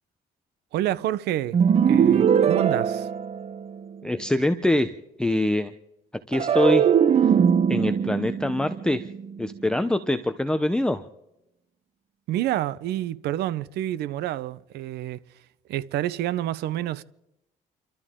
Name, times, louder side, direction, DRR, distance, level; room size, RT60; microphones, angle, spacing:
voice 1, 0.7-1.6 1.9-3.1 12.3-15.2 15.7-17.0, right 13 dB, 75° right, 0.8 m, -28 dB
sound 1, 1.5-3.9 6.3-9.7, right 7 dB, 40° right, 0.7 m, -21 dB
voice 2, 4.0-4.9 5.2-5.7 6.3-6.8 7.2-7.3 7.7-9.1 9.4-11.0, left 1 dB, 5° left, 0.8 m, -24 dB
30.0 x 13.0 x 3.7 m
cardioid pair, 110°, 17 cm